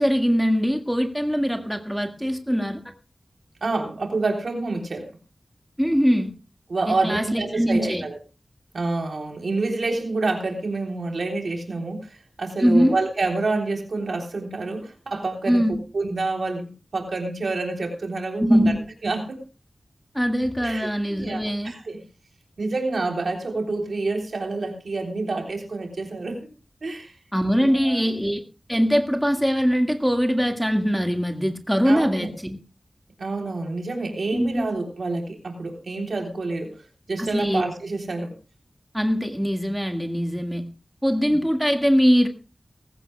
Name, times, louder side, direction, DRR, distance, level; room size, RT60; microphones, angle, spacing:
voice 1, 0.0-2.8 5.8-6.3 6.9-8.0 12.6-13.0 15.5-15.8 18.4-18.8 20.1-21.7 27.3-28.4 28.7-32.6 34.3-34.7 37.2-37.6 38.9-40.6 41.0-42.3, equal, ahead, 4 dB, 1.8 m, -22 dB
voice 2, 3.6-5.1 6.7-8.2 8.7-15.6 15.9-18.6 19.0-19.4 20.6-22.0 22.6-26.5 26.8-27.1 27.6-28.0 31.8-32.3 33.2-36.7 37.1-38.3, right 3 dB, 85° right, 2 dB, 3.4 m, -28 dB
19.0 x 16.0 x 2.3 m, 0.32 s
wide cardioid pair, 70°, 0 cm